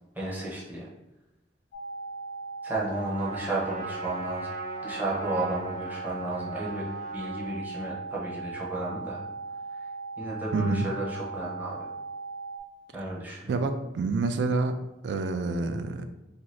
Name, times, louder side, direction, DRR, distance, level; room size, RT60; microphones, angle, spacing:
voice 1, 0.1-0.9 2.6-4.5 4.8-6.9 7.1-9.2 10.2-11.9 12.9-13.5, right 2 dB, 10° right, -6 dB, 0.6 m, -33 dB
sound 1, 1.7-12.6, right 4 dB, 70° left, 0.4 m, -38 dB
Trumpet, 2.9-7.6, right 2 dB, 50° right, 0.7 m, -41 dB
voice 2, 10.5-10.9 13.5-16.1, right 3 dB, 75° right, 8 dB, 0.3 m, -28 dB
2.7 x 2.6 x 3.1 m, 0.96 s
head